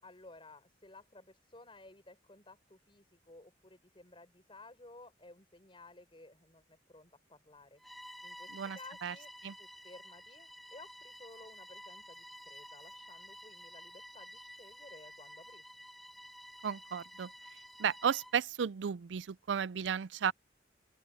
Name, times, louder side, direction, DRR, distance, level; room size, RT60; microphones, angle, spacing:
voice 1, 0.0-7.8 8.2-9.3 9.6-15.7, left 2 dB, 30° left, 6.3 m, -56 dB
Bowed string instrument, 7.8-18.4, equal, ahead, 6.5 m, -52 dB
voice 2, 8.5-9.1 9.4-9.5 16.6-17.3 17.8-20.3, right 7 dB, 80° right, 0.4 m, -34 dB
open air
head